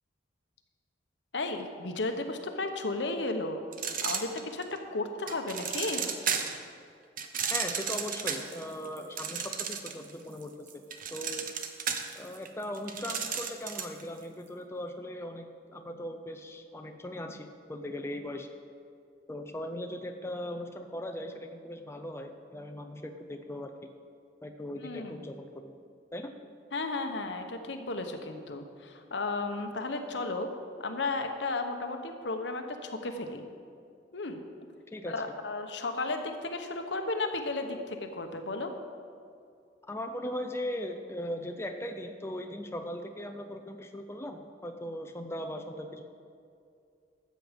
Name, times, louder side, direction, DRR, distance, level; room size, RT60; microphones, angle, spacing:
voice 1, 1.3-3.6 4.0-6.1 24.7-25.3 26.7-30.5 30.8-33.4 34.1-34.4 35.1-38.7, left 2 dB, 75° left, 6 dB, 1.0 m, -34 dB
sound 1, 3.7-4.8 5.3-6.6 7.2-10.1 10.4-14.0, right 7 dB, 50° right, 0.8 m, -33 dB
voice 2, 7.5-10.8 11.1-11.5 12.1-18.5 19.3-23.9 24.4-25.8 26.1-26.3 34.9-35.2 39.8-46.0, left 1 dB, 15° left, 5 dB, 0.5 m, -39 dB
13.0 x 7.7 x 5.1 m, 2.4 s
head